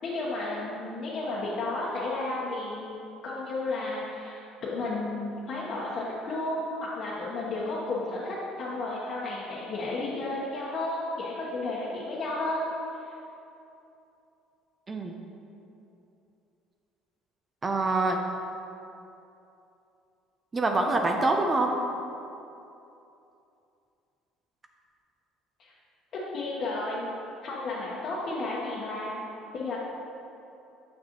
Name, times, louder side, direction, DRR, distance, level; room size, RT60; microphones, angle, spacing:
voice 1, 0.0-3.0 3.2-12.6 13.0-13.1 25.6-25.7 26.3-27.1 27.4-29.2 29.5-29.8, left 2 dB, 50° left, -7 dB, 1.1 m, -32 dB
voice 2, 17.6-18.2 20.5-21.8, right 2 dB, 25° right, 3 dB, 0.6 m, -25 dB
7.4 x 6.3 x 3.0 m, 2.8 s
supercardioid pair, 90°, 0 cm